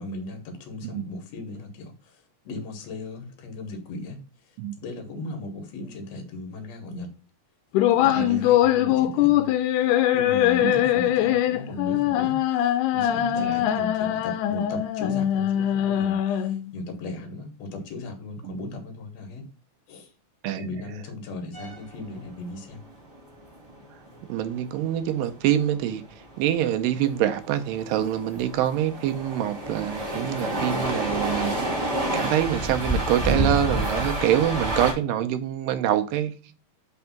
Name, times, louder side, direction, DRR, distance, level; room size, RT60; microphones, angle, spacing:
voice 1, 0.0-4.2 4.4-4.5 4.8-7.1 7.9-9.5 10.1-19.5 19.9-20.1 20.6-22.8, left 2 dB, 60° left, 2.2 m, -37 dB
sound 1, 7.7-16.7, left 12 dB, 80° left, 2.0 m, -22 dB
voice 2, 20.4-20.8 24.3-26.1 26.4-31.9 32.1-36.6, right 11 dB, 90° right, 2.3 m, -25 dB
sound 2, 21.5-34.9, right 1 dB, 15° right, 1.5 m, -29 dB
5.4 x 3.4 x 5.7 m
omnidirectional pair, 3.8 m